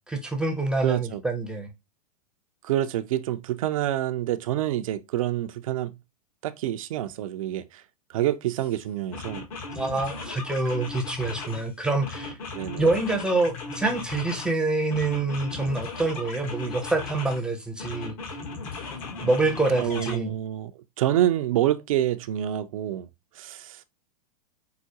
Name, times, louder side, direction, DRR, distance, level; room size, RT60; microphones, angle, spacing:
voice 1, 0.1-1.7 9.8-12.4 12.8-18.1 19.2-20.4, right 3 dB, 5° right, 0.5 m, -26 dB
voice 2, 0.8-1.2 2.6-5.9 6.4-7.8 8.1-9.4 12.5-12.8 19.8-20.7 21.0-23.1 23.4-23.8, right 12 dB, 55° right, 0.4 m, -27 dB
sound 1, 8.6-8.7 9.1-11.7 12.0-14.6 14.9-17.4 17.8-20.2, left 4 dB, 60° left, 1.2 m, -37 dB
4.6 x 2.0 x 2.8 m
hypercardioid pair, 105°, 20 cm